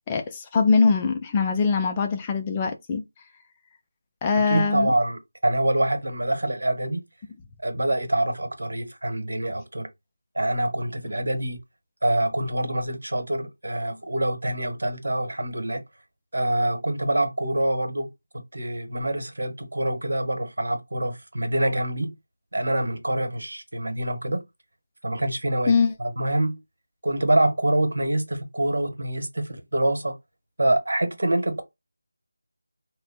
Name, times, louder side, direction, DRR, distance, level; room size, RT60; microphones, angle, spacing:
voice 1, 0.1-3.0 4.2-4.9 25.7-25.9, left 5 dB, 15° left, 0.3 m, -22 dB
voice 2, 4.4-7.0 7.6-9.9 10.3-11.6 12.0-15.8 16.3-18.1 18.5-22.1 22.5-24.4 25.0-26.6 27.0-30.1 30.6-31.6, right 1 dB, 75° right, 1.2 m, -25 dB
3.2 x 2.2 x 4.1 m
figure-of-eight pair, 175°, 0 cm